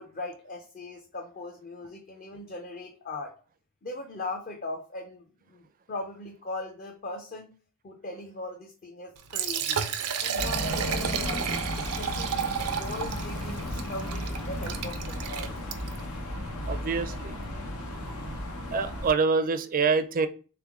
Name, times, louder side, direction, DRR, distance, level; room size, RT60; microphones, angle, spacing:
voice 1, 0.0-3.3 3.8-7.5 7.8-9.9 10.2-11.4 11.8-12.5 12.8-15.7, left 2 dB, 40° left, 0.6 m, -39 dB
Liquid, 9.2-16.1, right 7 dB, 90° right, 0.6 m, -32 dB
sound 1, 10.3-19.1, left 1 dB, 90° left, 0.9 m, -34 dB
voice 2, 16.7-17.3 18.7-20.3, right 5 dB, 40° right, 0.4 m, -26 dB
3.6 x 3.4 x 3.6 m
head